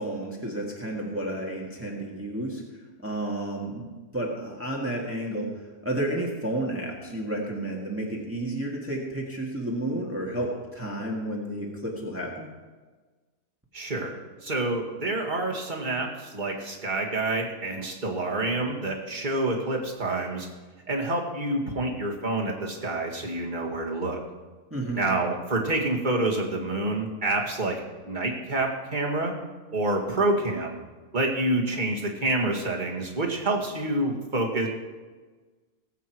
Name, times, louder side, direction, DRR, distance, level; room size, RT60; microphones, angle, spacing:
voice 1, 0.0-2.6 3.0-3.9 4.1-12.5 24.7-25.0, right 1 dB, 10° right, -2 dB, 1.8 m, -31 dB
voice 2, 13.7-20.5 20.9-24.2 24.9-27.8 28.0-29.3 29.7-30.8 31.1-34.7, right 2 dB, 35° right, 0 dB, 2.1 m, -27 dB
20.0 x 8.2 x 4.6 m, 1.3 s
omnidirectional pair, 1.5 m